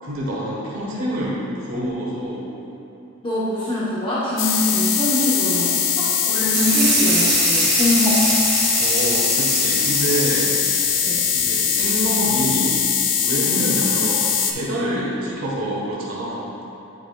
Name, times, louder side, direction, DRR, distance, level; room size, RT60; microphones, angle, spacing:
voice 1, 0.0-1.4 1.7-2.5 8.7-10.5 11.3-12.8 13.2-16.5, right 1 dB, 85° right, -5 dB, 1.4 m, -26 dB
voice 2, 3.2-8.2 11.0-11.2 13.5-13.8, left 1 dB, 25° left, -10 dB, 1.1 m, -23 dB
sound 1, 4.4-14.5, left 7 dB, 60° left, 0.5 m, -21 dB
sound 2, 6.5-12.3, right 4 dB, 50° right, 1.4 m, -24 dB
9.7 x 5.1 x 2.3 m, 3.0 s
head